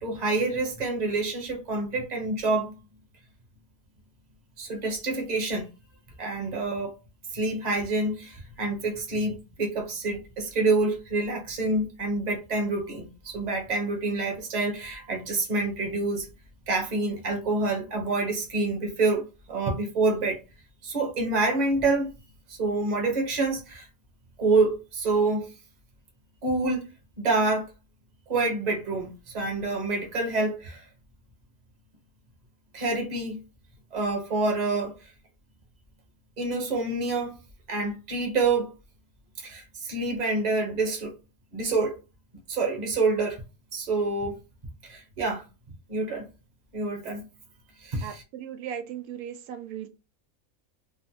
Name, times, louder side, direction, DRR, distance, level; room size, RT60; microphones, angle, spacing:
voice 1, 0.0-2.7 4.6-5.7 6.2-6.9 7.3-16.3 16.7-20.4 20.8-22.1 22.5-23.9 24.4-25.5 26.4-26.8 27.2-27.7 28.3-30.9 32.7-33.4 33.9-34.9 36.4-37.4 37.7-38.7 39.4-41.1 41.5-42.0 42.5-43.4 43.7-44.4 44.8-45.4 45.9-46.2 46.7-47.2 47.8-48.2, right 3 dB, 35° right, 0.9 m, -27 dB
voice 2, 48.0-49.9, right 9 dB, 90° right, 1.0 m, -37 dB
3.7 x 2.1 x 2.7 m
omnidirectional pair, 1.5 m